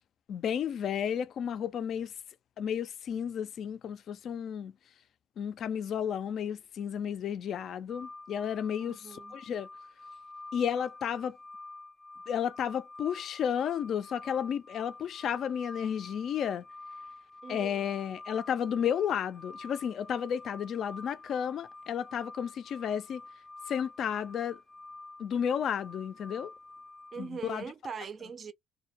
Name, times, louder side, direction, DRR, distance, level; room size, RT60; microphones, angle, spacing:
voice 1, 0.3-2.1 2.6-4.7 5.4-9.7 10.5-11.4 12.3-16.6 17.5-23.2 23.7-24.6 25.2-26.5 27.2-27.6, left 8 dB, 55° left, 0.3 m, -32 dB
sound 1, 7.9-27.3, left 2 dB, 10° left, 0.6 m, -48 dB
voice 2, 8.8-9.4 17.4-17.8 27.1-28.5, right 6 dB, 40° right, 0.4 m, -41 dB
2.2 x 2.1 x 2.8 m
supercardioid pair, 90°, 0 cm